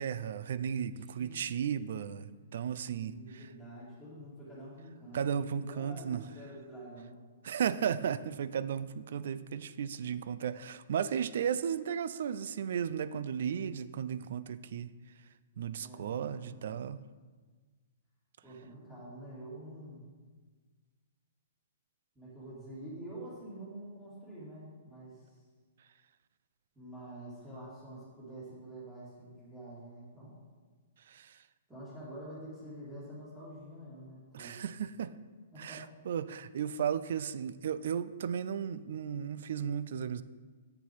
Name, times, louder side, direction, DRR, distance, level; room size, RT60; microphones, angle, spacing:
voice 1, 0.0-3.5 5.1-6.2 7.4-14.9 15.6-17.1 31.1-31.4 34.3-35.1 35.6-40.2, right 8 dB, 65° right, 15 dB, 0.4 m, -35 dB
voice 2, 3.0-7.2 15.8-16.8 18.4-20.1 22.1-25.4 26.7-30.4 31.7-34.6 35.5-35.8, right 1 dB, 5° right, -13 dB, 2.4 m, -47 dB
7.6 x 6.8 x 4.6 m, 1.4 s
hypercardioid pair, 145°, 0 cm